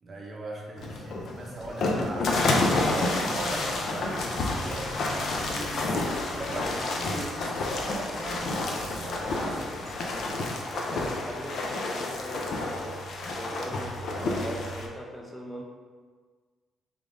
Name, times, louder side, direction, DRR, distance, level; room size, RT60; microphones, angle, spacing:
voice 1, 0.0-4.2 4.6-9.7, right 2 dB, 40° right, -2 dB, 0.7 m, -39 dB
sound 1, 0.8-14.9, left 2 dB, 65° left, 0.5 m, -29 dB
sound 2, 1.5-11.0, right 1 dB, 85° right, 0.6 m, -45 dB
voice 2, 10.9-13.0 13.3-15.6, equal, 5° left, -1 dB, 0.4 m, -40 dB
3.6 x 3.2 x 2.6 m, 1.5 s
cardioid pair, 90°, 0 cm